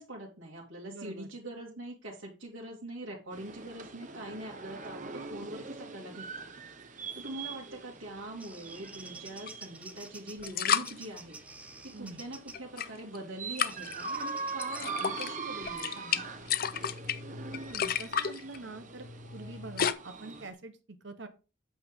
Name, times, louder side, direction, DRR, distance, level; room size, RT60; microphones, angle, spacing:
voice 1, 0.0-6.5 7.2-11.4 11.8-16.4, right 1 dB, 80° right, -4 dB, 2.3 m, -43 dB
voice 2, 0.9-1.3 11.9-12.2 17.5-21.3, right 2 dB, 65° right, 9 dB, 1.0 m, -45 dB
sound 1, 3.3-20.5, right 4 dB, 40° right, 1.0 m, -43 dB
Bird vocalization bird call bird song, 7.9-12.7 13.7-14.9, right 2 dB, 5° right, 0.6 m, -49 dB
sound 2, 9.5-9.6 10.4-10.9 12.5-13.2 13.6-13.9 14.6-15.3 15.6-19.9, left 8 dB, 45° left, 0.5 m, -32 dB
8.6 x 7.1 x 3.6 m, 0.31 s
head